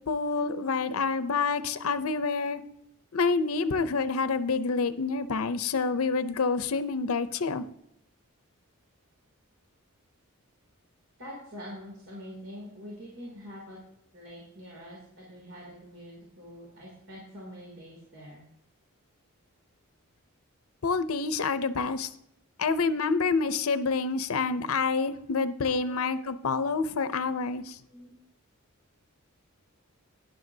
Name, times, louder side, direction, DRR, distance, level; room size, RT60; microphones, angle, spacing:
voice 1, 0.0-2.6 3.1-7.6 20.8-22.1 22.6-27.8, left 4 dB, 70° left, 12 dB, 0.6 m, -28 dB
voice 2, 1.2-1.7 11.2-13.8 14.1-18.4 25.3-25.9 27.9-28.1, equal, 65° right, -4 dB, 2.8 m, -45 dB
12.0 x 10.0 x 2.7 m, 0.78 s
head